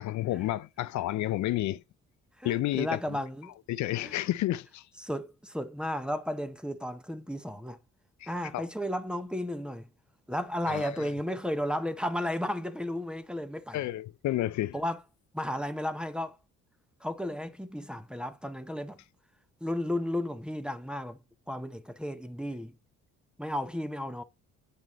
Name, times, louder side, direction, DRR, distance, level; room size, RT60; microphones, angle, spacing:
voice 1, 0.0-1.8 2.4-3.0 3.7-4.8 8.2-8.3 8.5-8.7 10.7-11.0 13.7-14.8, left 15 dB, 70° left, 0.5 m, -30 dB
voice 2, 2.4-3.5 4.0-4.1 5.0-7.8 8.3-9.9 10.3-13.8 14.7-15.0 15.3-16.4 17.0-19.0 19.6-21.2 21.5-22.7 23.4-24.2, left 1 dB, 5° right, 0.6 m, -33 dB
8.0 x 5.1 x 3.0 m
cardioid pair, 90°, 30 cm